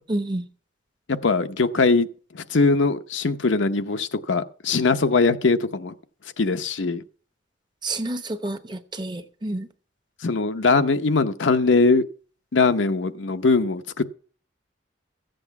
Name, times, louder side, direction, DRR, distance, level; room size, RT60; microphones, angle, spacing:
voice 1, 0.1-0.5 7.8-9.7, right 2 dB, 25° right, 0.9 m, -29 dB
voice 2, 1.1-2.1 2.3-5.9 6.4-7.0 10.2-12.0 12.5-14.0, left 3 dB, 75° left, 0.8 m, -21 dB
14.5 x 7.8 x 5.9 m
head